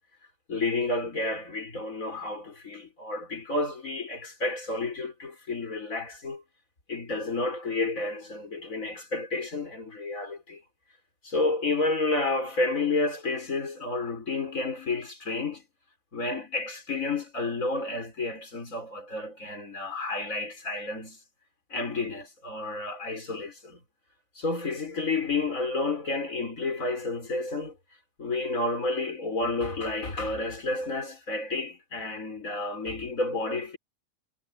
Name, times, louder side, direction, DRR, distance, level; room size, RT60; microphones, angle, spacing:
voice 1, 0.5-6.4 6.9-10.6 11.2-15.6 16.1-21.2 21.7-23.8 24.4-27.8 28.2-33.8, left 3 dB, 85° left, 5.2 m, -30 dB
omnidirectional pair, 1.4 m